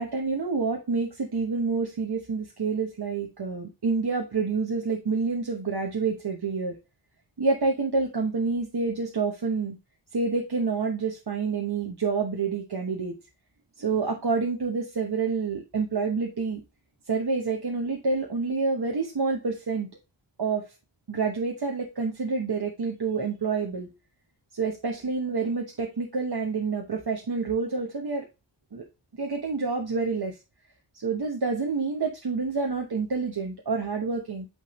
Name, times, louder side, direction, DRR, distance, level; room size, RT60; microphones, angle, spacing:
voice 1, 0.0-6.8 7.4-9.8 10.1-13.2 13.8-16.6 17.1-19.9 20.4-20.7 21.1-23.9 24.5-28.3 28.7-28.8 29.2-30.4 30.9-34.5, right 4 dB, 55° right, 1 dB, 1.1 m, -28 dB
8.6 x 3.6 x 3.1 m, 0.27 s
wide cardioid pair, 80°, 46 cm